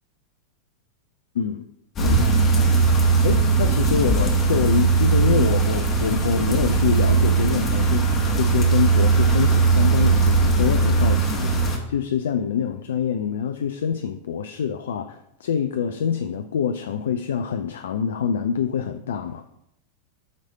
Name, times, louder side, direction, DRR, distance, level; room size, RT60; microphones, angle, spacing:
voice 1, 1.3-1.7 2.0-2.7 3.2-19.4, left 7 dB, 60° left, 8 dB, 0.3 m, -26 dB
sound 1, 2.0-11.8, right 4 dB, 30° left, 1.3 m, -19 dB
8.1 x 3.2 x 5.2 m, 0.78 s
figure-of-eight pair, 90°, 0 cm